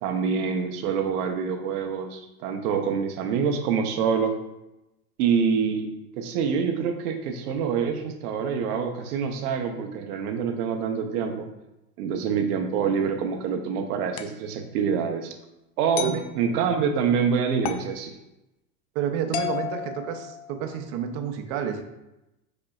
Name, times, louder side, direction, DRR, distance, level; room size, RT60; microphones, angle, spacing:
voice 1, 0.0-4.4 5.2-5.9 6.1-11.5 12.0-15.3 15.8-18.2, right 6 dB, 75° right, 5 dB, 0.7 m, -26 dB
sound 1, 14.2-14.4 16.0-16.3 17.6-18.0 19.3-20.7, left 9 dB, 50° left, 0.5 m, -33 dB
voice 2, 18.9-21.8, right 8 dB, 45° right, 5 dB, 0.6 m, -30 dB
5.0 x 4.4 x 2.3 m, 0.93 s
supercardioid pair, 145°, 46 cm